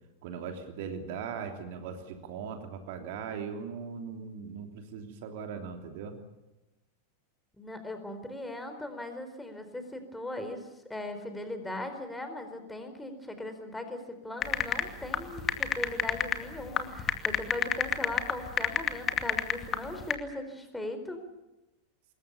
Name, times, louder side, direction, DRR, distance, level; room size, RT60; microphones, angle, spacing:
voice 1, 0.2-6.2, right 6 dB, 50° right, 5 dB, 3.1 m, -39 dB
voice 2, 7.6-21.2, left 1 dB, 5° left, 7 dB, 4.3 m, -39 dB
sound 1, 14.4-20.1, left 9 dB, 30° left, 2.3 m, -28 dB
26.0 x 22.0 x 7.0 m, 1.0 s
figure-of-eight pair, 90°, 0 cm